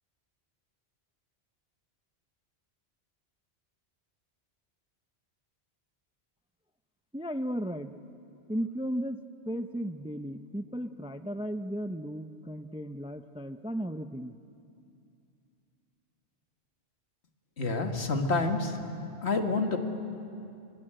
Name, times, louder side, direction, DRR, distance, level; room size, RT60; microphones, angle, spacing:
voice 1, 7.1-7.9 8.5-9.2 9.5-14.4, equal, 5° right, 10 dB, 0.4 m, -35 dB
voice 2, 17.6-18.8 19.2-19.8, left 3 dB, 75° left, 4 dB, 2.0 m, -28 dB
24.5 x 24.5 x 8.9 m, 2.6 s
omnidirectional pair, 1.1 m